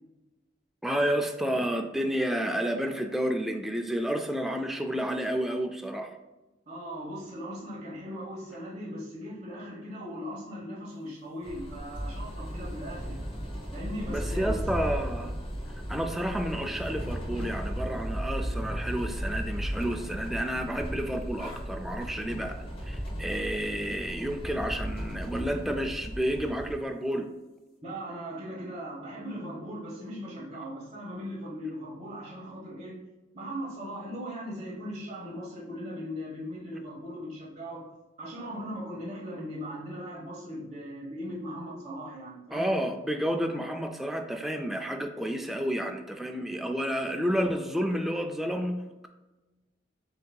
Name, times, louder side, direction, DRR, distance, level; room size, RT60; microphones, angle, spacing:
voice 1, 0.8-6.1 14.1-15.3 15.9-22.6 22.8-27.3 42.5-49.1, equal, ahead, 4 dB, 0.3 m, -30 dB
voice 2, 6.7-13.2 13.7-14.6 27.8-33.0 33.3-37.9 38.2-42.8, equal, 35° right, -7 dB, 1.1 m, -39 dB
sound 1, 11.4-26.7, equal, 30° left, 0.9 m, -35 dB
7.5 x 2.7 x 2.3 m, 1.1 s
head